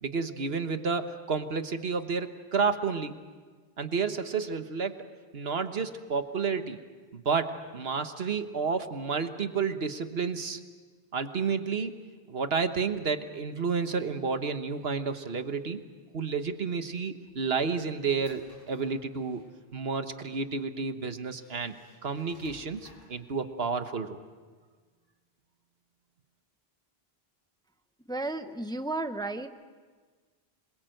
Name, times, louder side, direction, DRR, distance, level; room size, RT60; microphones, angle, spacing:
voice 1, 0.0-3.1 3.8-5.1 5.3-6.8 7.1-10.6 11.1-11.9 12.3-15.8 16.1-19.4 19.7-21.7 22.0-24.2, right 5 dB, 75° right, 8 dB, 1.5 m, -31 dB
sound 1, 17.2-19.6 20.5-20.6 21.2-23.3, left 1 dB, 65° left, 5.7 m, -59 dB
voice 2, 28.1-29.5, right 2 dB, 5° left, 9 dB, 0.8 m, -33 dB
26.5 x 22.0 x 7.8 m, 1.5 s
omnidirectional pair, 1.0 m